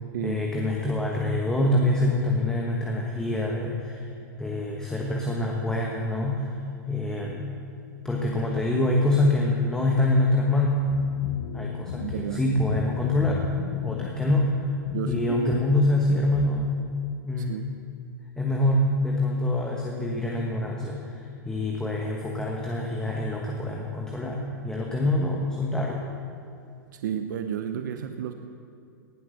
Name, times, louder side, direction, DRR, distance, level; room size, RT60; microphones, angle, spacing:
voice 1, 0.2-4.1 4.4-7.5 8.0-10.9 11.5-13.5 13.8-14.6 15.0-16.7 17.2-17.6 18.4-26.1, left 1 dB, 5° left, -1 dB, 1.3 m, -25 dB
sound 1, 10.9-16.5, left 8 dB, 75° left, 0.7 m, -37 dB
voice 2, 12.0-12.4 14.9-15.5 17.5-17.7 27.0-28.3, right 9 dB, 70° right, 7 dB, 0.8 m, -31 dB
18.0 x 7.7 x 6.5 m, 2.5 s
hypercardioid pair, 125°, 10 cm